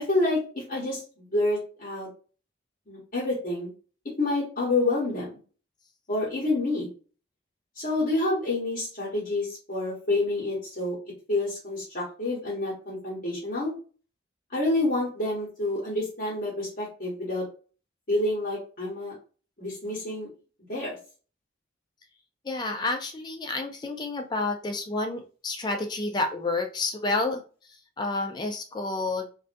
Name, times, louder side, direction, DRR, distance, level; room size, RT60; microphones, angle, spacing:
voice 1, 0.0-2.1 2.9-3.7 4.2-5.4 6.1-6.9 7.8-11.0 11.3-13.7 14.5-17.4 18.1-19.1 19.6-20.3 20.7-21.0, left 2 dB, 45° left, -6 dB, 1.0 m, -28 dB
voice 2, 22.4-27.4 27.7-29.3, left 2 dB, 20° left, 4 dB, 0.3 m, -30 dB
2.4 x 2.2 x 2.5 m, 0.37 s
head